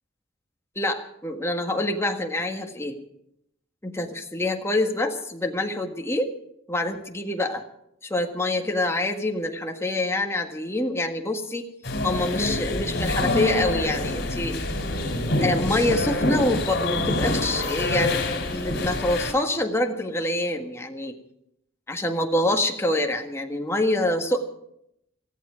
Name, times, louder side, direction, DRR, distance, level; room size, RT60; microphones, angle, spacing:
voice 1, 0.7-3.0 3.8-6.3 6.7-7.6 8.0-11.6 12.0-14.6 15.4-18.2 18.5-21.2 21.9-24.6, left 1 dB, 15° left, 3 dB, 1.6 m, -26 dB
sound 1, 11.8-19.3, left 2 dB, 60° left, 3.7 m, -26 dB
18.5 x 15.0 x 5.1 m, 0.76 s
head